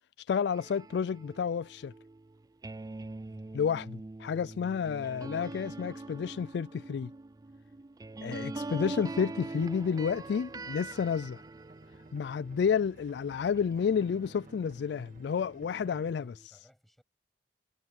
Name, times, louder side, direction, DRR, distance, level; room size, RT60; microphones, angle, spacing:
voice 1, 0.3-1.9 3.5-7.1 8.2-11.4 12.1-16.3, left 6 dB, 65° left, 0.3 m, -30 dB
sound 1, 0.5-13.1 13.5-16.5, right 2 dB, 20° right, 0.4 m, -44 dB
voice 2, 3.3-3.6 15.8-17.0, equal, ahead, 7.9 m, -61 dB
sound 2, 9.4-16.1, right 1 dB, 50° right, 1.8 m, -55 dB
head